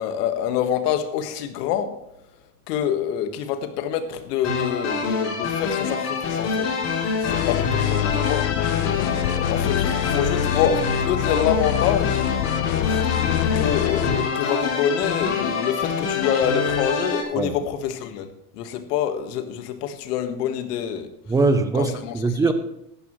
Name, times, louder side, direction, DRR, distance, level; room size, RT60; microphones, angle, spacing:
voice 1, 0.0-1.9 2.7-6.7 7.0-8.5 9.1-12.2 12.9-13.1 13.5-18.3 18.5-21.1 21.7-22.1, left 9 dB, 70° left, 1.7 m, -26 dB
sound 1, 4.4-17.2, left 5 dB, 35° left, 3.7 m, -26 dB
sound 2, 7.3-14.3, left 12 dB, 90° left, 0.8 m, -25 dB
voice 2, 21.3-22.5, right 3 dB, 5° right, 0.7 m, -21 dB
15.5 x 11.0 x 3.2 m
supercardioid pair, 140°, 48 cm